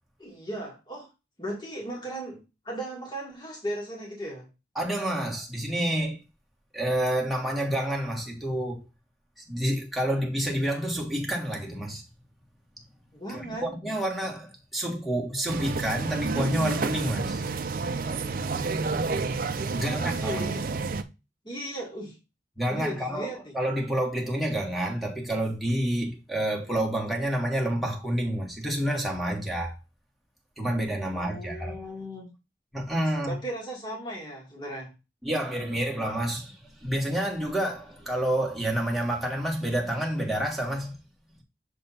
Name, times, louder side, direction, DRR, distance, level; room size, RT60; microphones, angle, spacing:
voice 1, 0.2-1.1 1.4-4.5 13.1-13.8 19.7-20.7 21.4-22.2 22.7-23.5 31.0-32.3 33.3-34.9, right 1 dB, 25° left, 1.8 m, -37 dB
voice 2, 4.7-6.2 6.7-8.8 9.4-12.0 13.3-17.4 19.7-20.5 22.6-29.8 30.6-31.9 32.7-33.4 35.2-41.0, right 1 dB, ahead, 1.5 m, -29 dB
sound 1, 15.5-21.0, right 4 dB, 50° right, 0.5 m, -29 dB
6.8 x 3.5 x 4.1 m
head